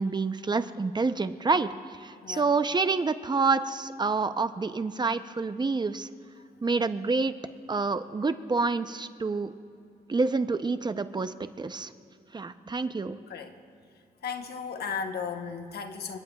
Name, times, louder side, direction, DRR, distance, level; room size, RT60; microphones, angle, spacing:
voice 1, 0.0-1.7 2.0-6.1 6.6-7.3 7.7-9.5 10.1-11.9 12.3-13.2, right 4 dB, 25° right, 11 dB, 0.6 m, -28 dB
voice 2, 14.2-16.2, left 6 dB, 85° left, 5 dB, 1.1 m, -35 dB
29.0 x 17.5 x 2.3 m, 2.5 s
cardioid pair, 105°, 16 cm